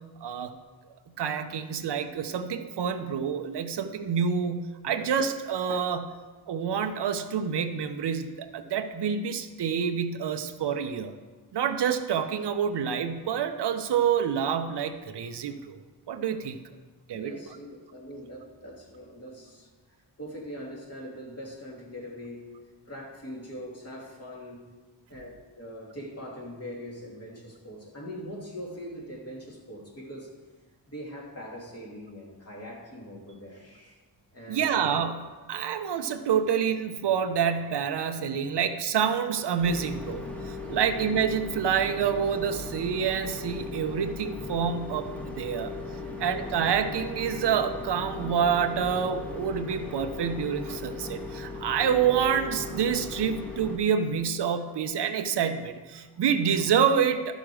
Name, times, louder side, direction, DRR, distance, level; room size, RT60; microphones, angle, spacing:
voice 1, 0.2-0.5 1.2-6.1 6.5-11.1 11.5-15.8 16.1-16.6 17.1-17.3 34.5-45.7 46.2-57.3, right 7 dB, 80° right, 8 dB, 0.8 m, -27 dB
voice 2, 17.1-19.7 20.2-22.6 22.8-24.6 25.1-30.4 30.9-34.0 34.3-34.7 40.7-40.8 46.0-46.2 56.3-56.4, equal, 35° left, -2 dB, 2.6 m, -42 dB
sound 1, 39.6-53.8, left 3 dB, 5° left, 1.5 m, -38 dB
12.0 x 6.4 x 4.9 m, 1.4 s
cardioid pair, 85°, 40 cm